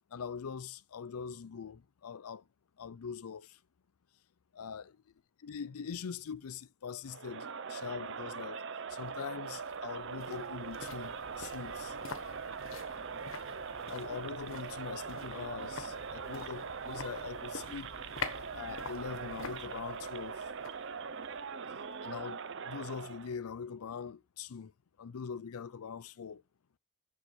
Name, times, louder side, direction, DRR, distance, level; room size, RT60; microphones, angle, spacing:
voice 1, 0.1-2.4 2.8-3.6 4.5-4.9 5.4-8.6 8.9-12.0 13.9-17.9 18.5-20.5 22.0-24.7 25.0-26.4, left 6 dB, 90° left, 0.5 m, -42 dB
Crowd, 7.1-23.4, right 5 dB, 55° right, 0.6 m, -42 dB
sound 1, 9.0-22.2 22.5-22.6, left 5 dB, 65° left, 1.3 m, -47 dB
7.2 x 6.4 x 7.9 m
head